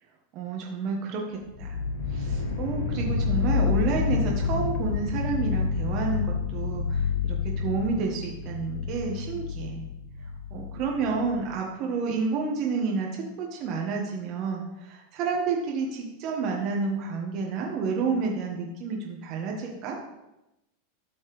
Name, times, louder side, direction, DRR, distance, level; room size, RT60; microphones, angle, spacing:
voice 1, 0.3-1.8 2.1-9.8 10.5-20.0, right 4 dB, 45° right, 0 dB, 1.5 m, -30 dB
sound 1, 1.5-11.4, left 5 dB, 75° left, 2.3 m, -29 dB
12.5 x 6.3 x 3.3 m, 0.92 s
hypercardioid pair, 90°, 0 cm